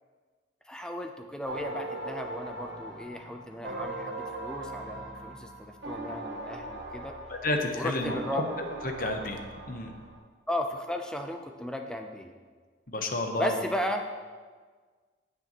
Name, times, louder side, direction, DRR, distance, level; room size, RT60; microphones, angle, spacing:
voice 1, 0.7-7.1 7.7-8.4 10.5-12.3 13.4-14.0, equal, 5° left, 4 dB, 0.5 m, -35 dB
sound 1, 1.5-10.2, right 2 dB, 75° right, 1.6 m, -39 dB
voice 2, 7.3-8.4 8.8-9.4 9.7-9.9 12.9-13.6, left 2 dB, 50° left, 4 dB, 0.9 m, -30 dB
15.0 x 6.7 x 3.0 m, 1.5 s
head